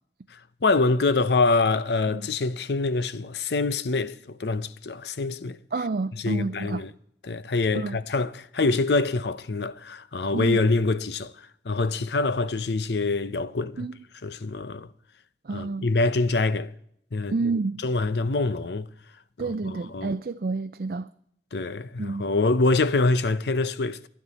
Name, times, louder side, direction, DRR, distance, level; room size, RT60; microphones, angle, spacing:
voice 1, 0.3-5.6 6.1-6.9 7.2-13.9 14.2-14.9 15.5-16.7 17.1-17.4 17.8-18.9 19.4-20.1 21.5-24.0, left 3 dB, 75° left, 0.6 m, -25 dB
voice 2, 5.7-6.9 7.7-8.0 10.3-10.6 13.8-14.0 15.4-15.9 17.3-17.8 19.4-21.1 22.0-22.3, right 3 dB, 55° right, 0.4 m, -29 dB
23.5 x 9.4 x 4.1 m
head